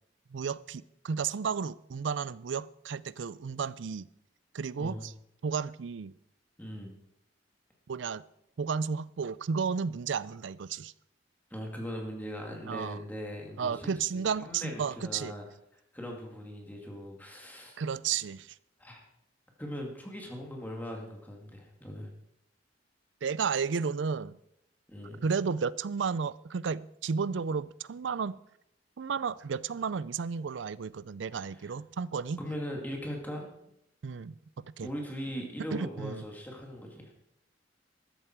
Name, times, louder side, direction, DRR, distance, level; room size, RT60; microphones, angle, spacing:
voice 1, 0.3-4.1 4.5-5.1 5.4-6.1 7.9-8.2 8.6-10.9 12.7-13.0 13.6-15.3 17.8-18.5 23.2-24.3 25.2-28.4 29.0-32.4 34.0-34.3 34.6-34.9 35.7-36.2, right 6 dB, 70° right, 0.4 m, -33 dB
voice 2, 6.6-6.9 11.5-15.4 15.9-17.8 18.8-19.0 19.6-22.1 24.9-25.2 31.3-31.7 32.4-33.5 34.8-37.1, equal, 10° left, 2.4 m, -40 dB
14.0 x 11.0 x 4.6 m
head